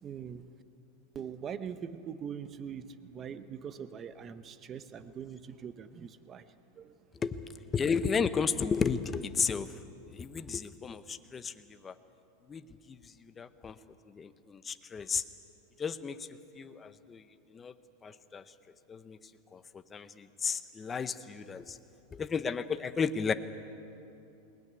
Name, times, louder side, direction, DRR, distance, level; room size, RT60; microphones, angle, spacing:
voice 1, 0.0-0.5 1.1-6.4 6.8-6.9, right 7 dB, 25° right, 12 dB, 0.8 m, -42 dB
voice 2, 7.7-9.7 10.1-11.5 11.8-11.9 12.5-12.6 13.4-13.7 14.2-15.2 15.8-16.2 16.6-17.2 17.5-17.7 18.0-18.4 18.9-19.2 19.5-19.6 19.9-21.8 22.2-23.3, left 6 dB, 15° left, 11 dB, 0.8 m, -33 dB
20.5 x 20.5 x 9.7 m, 2.8 s
supercardioid pair, 160°, 0 cm